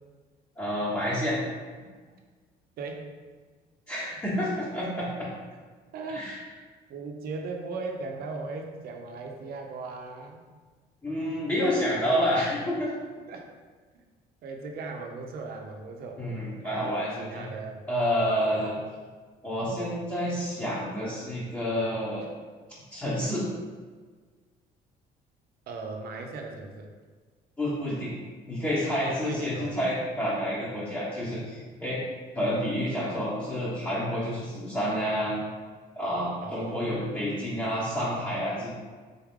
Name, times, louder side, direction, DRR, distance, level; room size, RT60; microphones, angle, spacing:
voice 1, 0.6-1.4 3.9-5.3 6.1-6.4 11.0-12.9 16.2-17.5 17.9-18.7 19.4-22.2 22.9-23.5 27.6-28.1 28.5-32.1 32.3-35.4 35.9-38.7, equal, 15° left, -8 dB, 1.0 m, -29 dB
voice 2, 2.8-3.1 5.9-6.3 6.9-10.4 13.3-13.5 13.9-14.0 14.4-16.2 16.6-17.8 18.4-18.8 25.7-26.9 29.0-29.7 36.4-37.4, right 3 dB, 65° right, 2 dB, 0.7 m, -38 dB
3.9 x 3.5 x 3.6 m, 1.5 s
cardioid pair, 110°, 17 cm